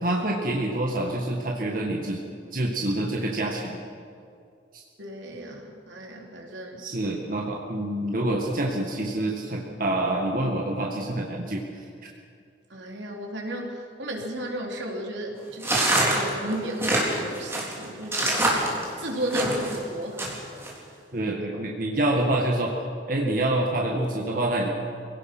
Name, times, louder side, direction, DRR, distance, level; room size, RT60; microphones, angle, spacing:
voice 1, 0.0-2.2 2.5-3.8 4.7-4.8 6.8-11.6 21.1-22.7 23.1-24.7, right 1 dB, 50° right, -1 dB, 1.9 m, -26 dB
voice 2, 5.0-6.8 12.7-20.2, equal, 80° right, 0 dB, 3.7 m, -34 dB
sound 1, 15.6-19.8 20.2-20.7, right 1 dB, 15° right, 3.9 m, -25 dB
25.5 x 17.5 x 6.2 m, 2.3 s
head